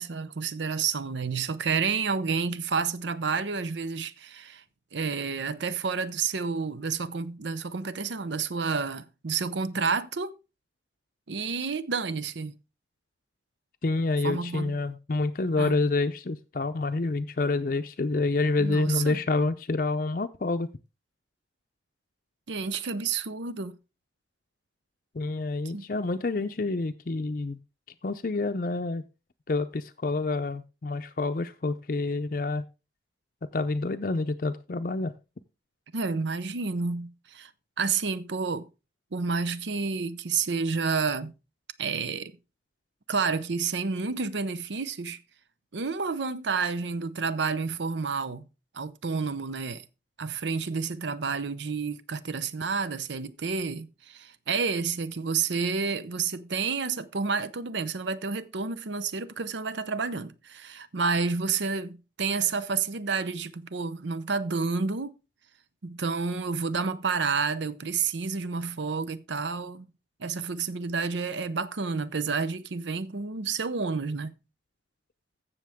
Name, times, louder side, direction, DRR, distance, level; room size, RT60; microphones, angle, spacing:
voice 1, 0.0-4.6 4.9-10.3 11.3-12.6 14.2-14.8 15.6-15.8 18.6-19.2 22.5-23.8 25.7-25.8 35.9-37.5 37.8-38.7 39.1-41.3 41.8-42.4 43.1-45.2 45.7-48.4 48.7-49.8 50.2-65.1 65.8-69.9 70.2-74.3, right 5 dB, 80° right, 0.7 m, -30 dB
voice 2, 13.8-20.7 25.1-27.6 28.0-29.0 29.5-32.6 33.5-35.1, left 3 dB, 45° left, 0.5 m, -28 dB
15.0 x 6.6 x 3.5 m
head